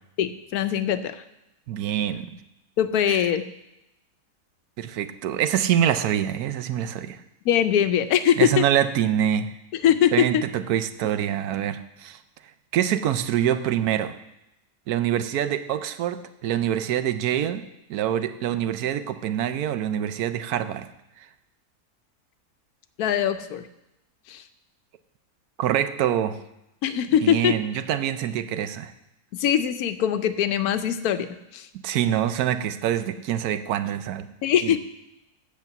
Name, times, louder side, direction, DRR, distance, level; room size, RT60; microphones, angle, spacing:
voice 1, 0.2-1.2 2.8-3.4 7.4-8.6 9.8-10.4 23.0-23.6 24.3-24.4 26.8-27.6 29.3-31.3 31.5-31.7 34.4-34.8, left 9 dB, 75° left, 11 dB, 1.2 m, -22 dB
voice 2, 1.7-2.4 3.1-3.3 4.8-7.2 8.4-9.5 10.1-12.2 12.7-14.1 14.9-17.6 17.9-20.9 25.6-26.4 27.2-28.9 31.8-34.3 34.6-34.8, right 10 dB, 80° right, 12 dB, 1.2 m, -25 dB
8.4 x 6.5 x 8.0 m, 0.88 s
omnidirectional pair, 1.6 m